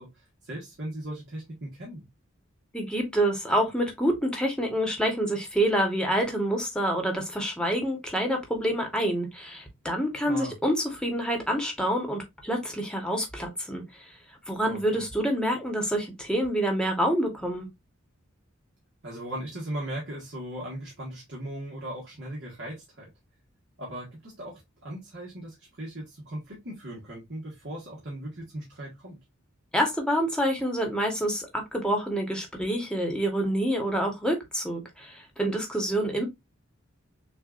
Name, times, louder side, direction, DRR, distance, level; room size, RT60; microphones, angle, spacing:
voice 1, 0.0-2.0 10.2-10.5 14.6-15.0 19.0-23.1 23.8-29.2, right 1 dB, 60° right, 1.6 m, -38 dB
voice 2, 2.7-13.8 14.5-17.7 29.7-36.2, right 1 dB, 5° left, 1.2 m, -27 dB
6.5 x 2.5 x 2.5 m
head